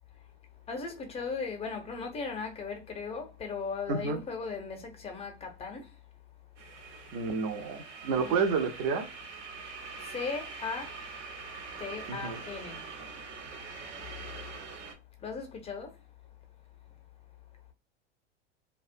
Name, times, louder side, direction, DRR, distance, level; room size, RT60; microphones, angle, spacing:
voice 1, 0.7-6.0 8.1-8.4 9.9-11.1 11.8-13.0 15.2-16.0, left 5 dB, 15° left, 0.5 m, -38 dB
sound 1, 6.6-14.9, right 4 dB, 75° right, 0.9 m, -44 dB
voice 2, 7.1-9.1 12.1-12.4, right 5 dB, 45° right, 0.6 m, -30 dB
2.3 x 2.2 x 2.5 m
hypercardioid pair, 95°, 36 cm